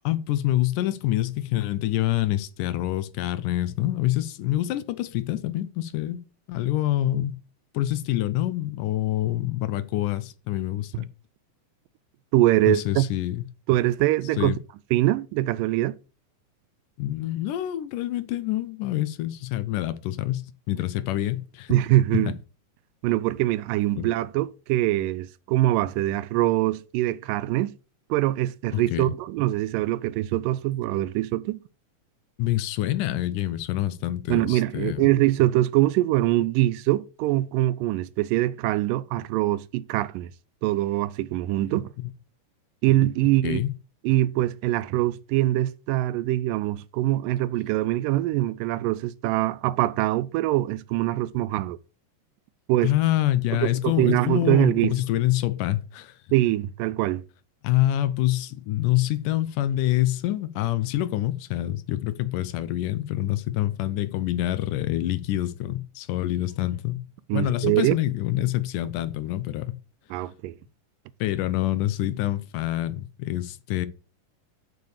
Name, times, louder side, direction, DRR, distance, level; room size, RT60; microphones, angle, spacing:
voice 1, 0.0-6.2 6.5-7.4 7.7-11.1 12.7-13.4 14.4-14.6 17.0-21.7 22.1-22.2 24.0-24.1 28.7-29.2 32.4-35.1 43.4-43.7 52.8-56.2 57.6-67.0 67.3-69.7 71.2-73.9, left 14 dB, 80° left, 2.2 m, -26 dB
voice 2, 12.3-13.0 13.7-14.5 14.9-16.0 21.7-22.4 23.0-27.7 28.1-31.6 34.3-40.3 40.6-41.9 42.8-43.6 44.0-51.8 52.7-52.9 53.5-54.9 56.3-57.2 67.3-68.0 70.1-70.6, right 16 dB, 85° right, 2.2 m, -23 dB
6.9 x 6.7 x 6.5 m
omnidirectional pair, 3.9 m